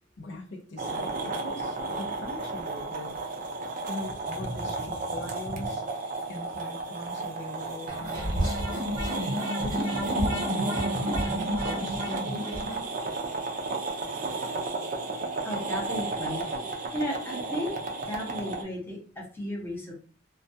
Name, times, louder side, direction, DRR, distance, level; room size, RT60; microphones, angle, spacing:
voice 1, 0.2-3.2 3.9-8.5 9.0-9.3 9.6-12.9, left 1 dB, 60° left, 2 dB, 0.5 m, -41 dB
sound 1, 0.8-18.6, right 3 dB, 45° right, 0.4 m, -33 dB
sound 2, 7.9-12.8, equal, 25° right, 0.9 m, -30 dB
voice 2, 15.4-16.4 16.9-17.7 18.0-19.9, equal, 10° left, -3 dB, 0.7 m, -34 dB
2.2 x 2.2 x 2.6 m, 0.41 s
head